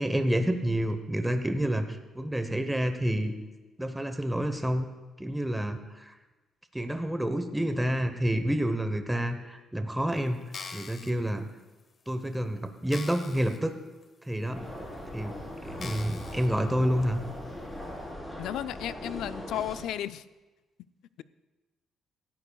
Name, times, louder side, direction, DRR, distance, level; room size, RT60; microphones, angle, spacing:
voice 1, 0.0-3.3 3.8-4.9 5.2-6.2 6.7-10.4 10.7-11.5 12.1-13.7 14.3-14.6 15.1-15.3 15.7-17.2, right 1 dB, 10° right, 7 dB, 0.9 m, -29 dB
sound 1, 10.4-11.1 11.8-11.9 12.3-12.4 12.9-13.6 14.0-14.1 14.9-15.0 15.8-16.5 17.0-17.1, left 5 dB, 45° left, 1.0 m, -42 dB
sound 2, 14.5-19.8, left 1 dB, 15° left, 4.0 m, -40 dB
voice 2, 18.4-20.2, left 11 dB, 85° left, 14 dB, 0.4 m, -34 dB
17.5 x 12.0 x 2.3 m, 1.2 s
cardioid pair, 90°, 0 cm